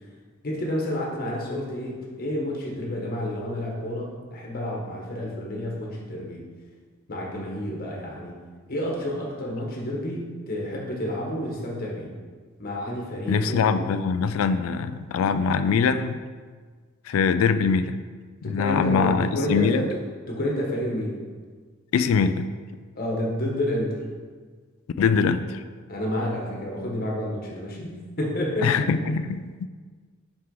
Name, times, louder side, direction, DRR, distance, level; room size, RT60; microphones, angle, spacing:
voice 1, 0.4-6.5 7.1-8.4 8.7-12.1 12.6-13.9 18.4-20.0 20.3-21.2 22.9-24.0 25.9-28.9, left 1 dB, 45° left, -1 dB, 1.1 m, -29 dB
voice 2, 13.3-16.2 17.1-18.0 18.4-19.9 21.9-22.5 25.0-25.6 28.6-29.7, left 5 dB, 80° left, 11 dB, 0.3 m, -23 dB
5.6 x 4.7 x 3.8 m, 1.5 s
head